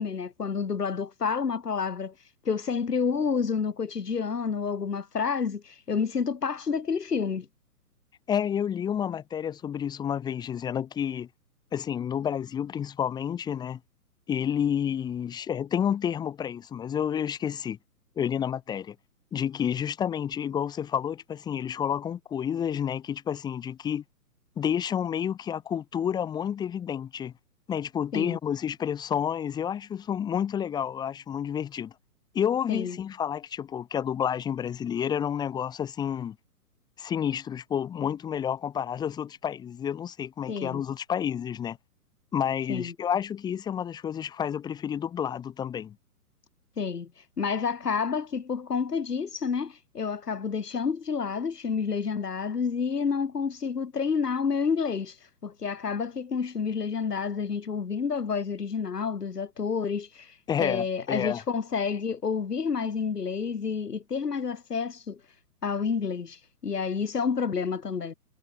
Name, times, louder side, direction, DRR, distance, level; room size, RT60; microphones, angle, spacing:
voice 1, 0.0-2.1 2.4-7.5 28.1-28.4 32.7-33.0 40.5-40.8 42.7-42.9 46.8-47.1 47.4-55.2 55.4-65.2 65.6-68.1, left 6 dB, 85° left, 1.2 m, -29 dB
voice 2, 8.3-11.3 11.7-13.8 14.3-17.8 18.2-18.9 19.3-24.0 24.6-27.3 27.7-31.9 32.3-36.4 37.0-41.8 42.3-46.0 60.5-61.4, left 8 dB, 10° left, 1.2 m, -30 dB
figure-of-eight pair, 130°, 46 cm